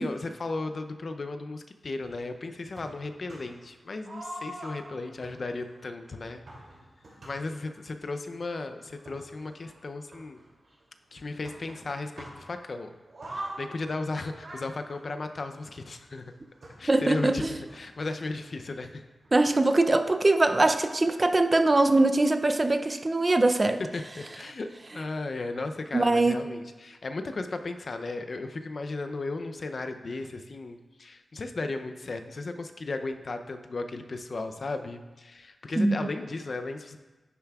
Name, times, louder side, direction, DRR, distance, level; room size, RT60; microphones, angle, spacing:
voice 1, 0.0-6.4 7.3-10.4 11.1-13.0 13.3-16.2 16.8-19.0 23.1-23.2 23.8-37.0, left 3 dB, 55° left, 7 dB, 0.5 m, -35 dB
sound 1, 2.7-3.6 4.0-7.8 8.5-8.6 8.9-10.8 11.4-12.6 13.1-15.8 16.6-18.6 18.9-19.0 19.2-19.3 20.0-20.1, right 1 dB, 65° right, 2.5 m, -44 dB
voice 2, 16.9-17.5 19.3-23.8 25.9-26.4 35.8-36.1, right 2 dB, 30° right, 8 dB, 0.4 m, -22 dB
10.5 x 6.9 x 2.3 m, 1.2 s
wide cardioid pair, 90°, 0 cm